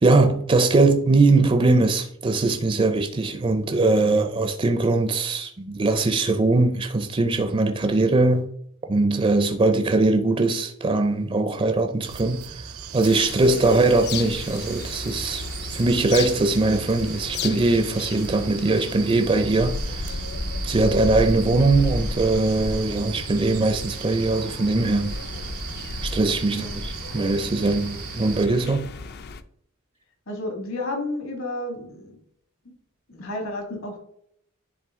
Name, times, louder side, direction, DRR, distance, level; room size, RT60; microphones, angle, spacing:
voice 1, 0.0-8.5 8.9-12.7 12.9-20.2 20.6-25.2 26.0-28.9, right 2 dB, 25° right, 0.4 m, -21 dB
sound 1, 12.0-28.5, right 7 dB, 75° right, 0.6 m, -37 dB
sound 2, 13.0-29.4, left 3 dB, 50° left, 0.4 m, -33 dB
voice 2, 26.5-26.8 30.3-32.1 33.1-34.0, left 1 dB, 65° left, 1.8 m, -31 dB
10.5 x 3.7 x 3.6 m
head